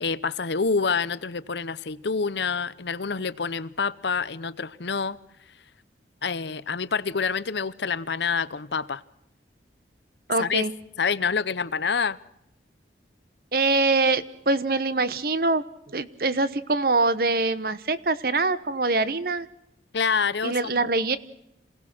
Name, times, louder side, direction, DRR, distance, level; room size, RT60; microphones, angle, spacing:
voice 1, 0.0-5.2 6.2-9.0 10.4-10.6 11.0-12.2 19.9-20.7, left 5 dB, 75° left, 0.8 m, -27 dB
voice 2, 10.3-10.7 13.5-19.5 20.4-21.2, right 3 dB, 55° right, 1.1 m, -24 dB
27.0 x 18.0 x 6.1 m
head